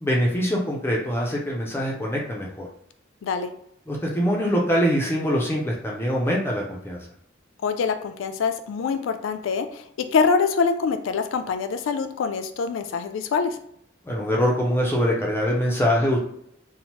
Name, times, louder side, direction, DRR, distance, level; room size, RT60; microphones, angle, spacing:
voice 1, 0.0-2.7 3.9-7.0 14.0-16.2, equal, 10° left, -2 dB, 0.4 m, -23 dB
voice 2, 7.6-13.6, left 5 dB, 80° left, 8 dB, 0.3 m, -25 dB
2.8 x 2.0 x 2.9 m, 0.71 s
head